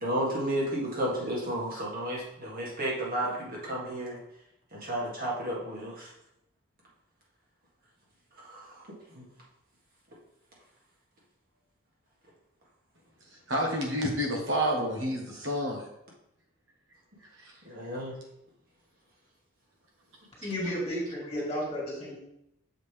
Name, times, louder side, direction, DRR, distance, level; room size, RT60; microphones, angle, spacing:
voice 1, 0.0-4.2 4.7-6.1 8.4-9.2 17.6-18.1, right 1 dB, 45° right, -4 dB, 1.8 m, -32 dB
voice 2, 13.5-15.8 17.4-17.5 20.4-20.5, equal, 65° right, 0 dB, 1.4 m, -29 dB
voice 3, 20.4-22.2, equal, 30° left, -4 dB, 2.0 m, -33 dB
6.7 x 5.2 x 3.4 m, 0.80 s
head